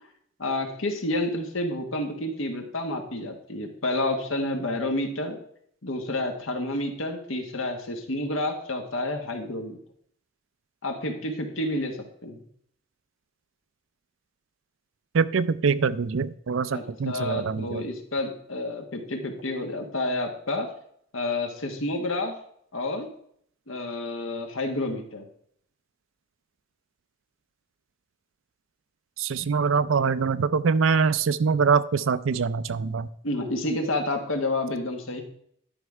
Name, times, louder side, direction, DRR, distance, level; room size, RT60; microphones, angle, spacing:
voice 1, 0.4-5.4 5.8-9.8 10.8-12.4 16.7-20.7 21.1-22.4 22.7-23.1 23.7-25.2 33.2-35.2, left 2 dB, 85° left, 4 dB, 1.6 m, -29 dB
voice 2, 15.1-17.8 29.2-33.1, right 5 dB, 75° right, 16 dB, 0.5 m, -24 dB
11.5 x 5.4 x 4.8 m, 0.67 s
head